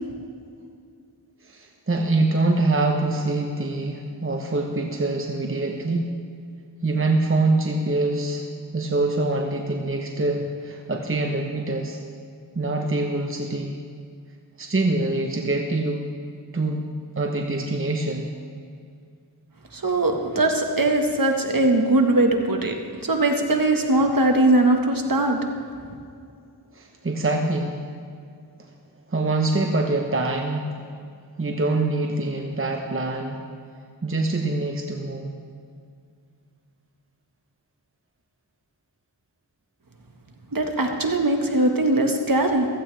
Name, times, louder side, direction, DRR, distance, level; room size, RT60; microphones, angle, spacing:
voice 1, 1.4-6.1 6.8-8.4 8.7-12.0 12.5-13.8 14.6-16.0 16.5-16.9 17.2-18.3 26.7-27.8 28.6-28.7 29.1-30.7 31.4-33.4 34.0-35.3, right 2 dB, 30° right, 2 dB, 1.2 m, -24 dB
voice 2, 19.7-22.8 23.0-25.4 40.5-42.7, right 2 dB, 50° right, 3 dB, 1.8 m, -20 dB
16.0 x 15.0 x 3.5 m, 2.3 s
cardioid pair, 45°, 44 cm